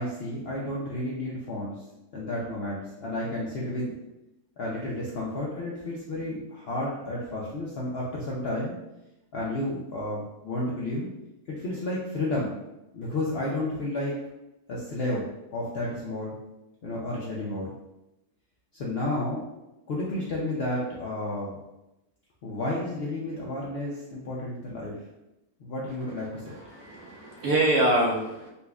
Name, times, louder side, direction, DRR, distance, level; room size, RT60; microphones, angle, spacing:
voice 1, 0.0-1.7 2.1-3.9 4.6-8.7 9.3-11.1 11.5-12.5 12.9-14.2 14.7-16.4 16.8-17.6 18.7-19.4 19.9-21.6 22.4-24.9 25.6-26.5, left 1 dB, 75° left, -5 dB, 0.5 m, -31 dB
voice 2, 26.5-28.5, right 1 dB, 75° right, -2 dB, 1.2 m, -25 dB
4.1 x 2.4 x 2.2 m, 0.94 s
omnidirectional pair, 1.7 m